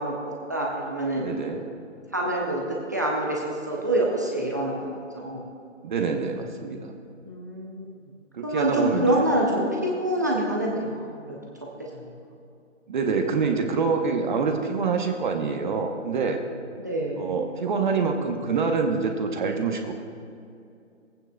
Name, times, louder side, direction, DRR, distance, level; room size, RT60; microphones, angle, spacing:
voice 1, 0.0-1.3 2.1-5.4 7.2-7.9 8.4-11.4 11.9-12.1 16.8-17.2, right 1 dB, 15° right, -3 dB, 0.5 m, -26 dB
voice 2, 1.2-1.6 5.8-6.9 8.3-9.3 12.9-16.4 17.2-19.9, right 5 dB, 40° right, 4 dB, 0.9 m, -26 dB
18.0 x 8.9 x 2.2 m, 2.5 s
hypercardioid pair, 150°, 37 cm